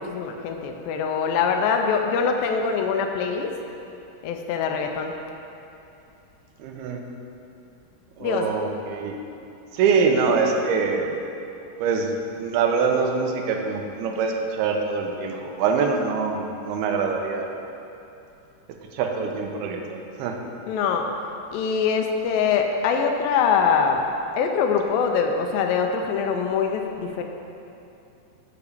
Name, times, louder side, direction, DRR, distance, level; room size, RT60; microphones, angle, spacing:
voice 1, 0.0-3.5 4.2-5.1 8.2-8.6 20.7-21.1 21.5-24.0 24.4-27.2, left 6 dB, 85° left, 3 dB, 2.0 m, -23 dB
voice 2, 6.6-7.0 8.2-9.2 9.7-11.1 11.8-12.1 12.4-17.5 18.9-20.4, right 5 dB, 85° right, 2 dB, 2.6 m, -24 dB
7.0 x 4.8 x 6.6 m, 2.7 s
omnidirectional pair, 4.6 m